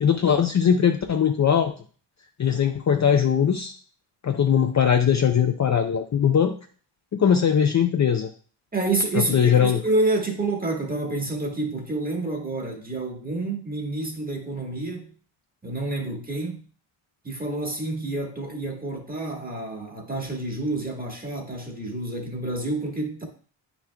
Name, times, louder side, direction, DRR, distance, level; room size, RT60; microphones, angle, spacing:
voice 1, 0.0-1.7 2.4-3.7 4.2-6.5 7.1-8.3 9.1-9.8, left 8 dB, 35° left, 0.5 m, -20 dB
voice 2, 8.7-15.1 15.6-16.6 17.2-23.3, right 2 dB, 15° right, 1.5 m, -28 dB
8.6 x 6.1 x 2.3 m
cardioid pair, 100°, 50 cm